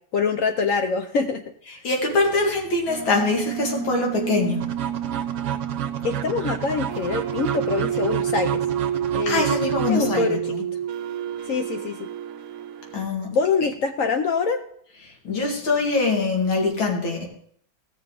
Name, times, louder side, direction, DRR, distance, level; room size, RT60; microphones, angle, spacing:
voice 1, 0.1-1.4 6.0-8.6 9.1-9.4 9.9-10.4 11.5-12.1 13.3-14.6, left 5 dB, 70° left, 6 dB, 0.8 m, -24 dB
voice 2, 1.8-4.7 9.3-10.6 12.9-13.4 15.2-17.3, left 3 dB, 90° left, 0 dB, 2.8 m, -23 dB
sound 1, 2.1-13.1, right 10 dB, 60° right, 0.9 m, -29 dB
sound 2, 4.6-10.6, right 9 dB, 75° right, 1.4 m, -31 dB
16.0 x 6.7 x 3.8 m, 0.64 s
omnidirectional pair, 2.1 m